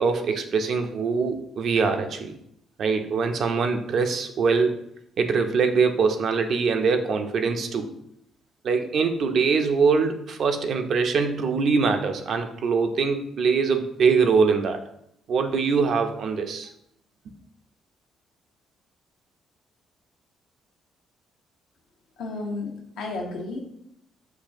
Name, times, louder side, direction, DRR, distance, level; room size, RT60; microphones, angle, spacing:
voice 1, 0.0-2.3 2.8-4.8 5.2-7.9 8.6-14.8 15.3-16.7, right 5 dB, 65° right, 6 dB, 0.5 m, -23 dB
voice 2, 22.2-23.6, left 3 dB, 85° left, 0 dB, 0.7 m, -32 dB
5.9 x 2.3 x 2.6 m, 0.75 s
supercardioid pair, 65°, 0 cm